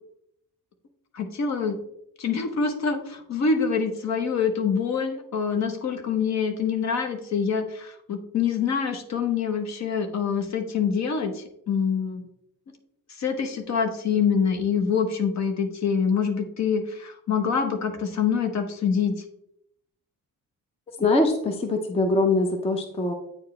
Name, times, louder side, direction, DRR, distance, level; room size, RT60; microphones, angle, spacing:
voice 1, 1.1-1.8 2.2-12.2 13.2-19.1, left 6 dB, 55° left, 6 dB, 0.9 m, -25 dB
voice 2, 21.0-23.1, left 2 dB, 20° left, 5 dB, 0.5 m, -23 dB
8.6 x 4.8 x 3.1 m, 0.77 s
cardioid pair, 180°, 34 cm